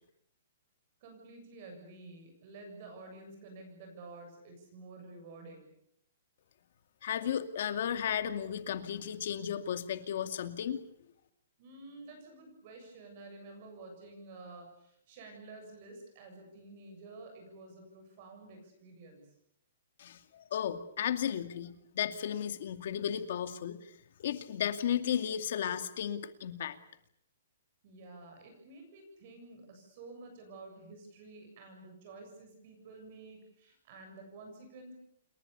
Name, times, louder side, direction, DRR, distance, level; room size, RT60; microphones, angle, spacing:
voice 1, 1.0-5.7 11.6-19.4 27.8-34.9, right 3 dB, 30° right, 3 dB, 7.3 m, -50 dB
voice 2, 7.0-10.8 20.0-23.8 24.2-26.8, left 9 dB, 45° left, 9 dB, 2.4 m, -34 dB
29.0 x 22.5 x 7.0 m, 0.72 s
hypercardioid pair, 180°, 0 cm